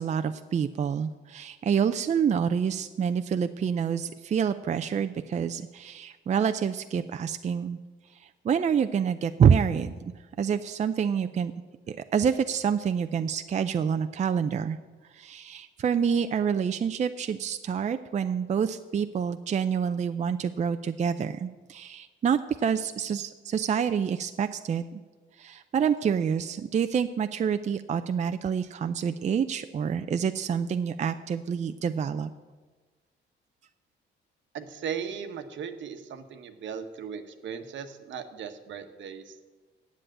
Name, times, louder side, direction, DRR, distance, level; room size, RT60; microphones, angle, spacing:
voice 1, 0.0-7.8 8.2-10.1 10.4-11.5 11.9-14.8 15.1-25.0 25.4-32.3, right 7 dB, 35° right, 9 dB, 0.5 m, -27 dB
voice 2, 34.5-39.4, right 7 dB, 70° right, 8 dB, 1.1 m, -37 dB
8.4 x 7.7 x 8.9 m, 1.3 s
cardioid pair, 90°, 20 cm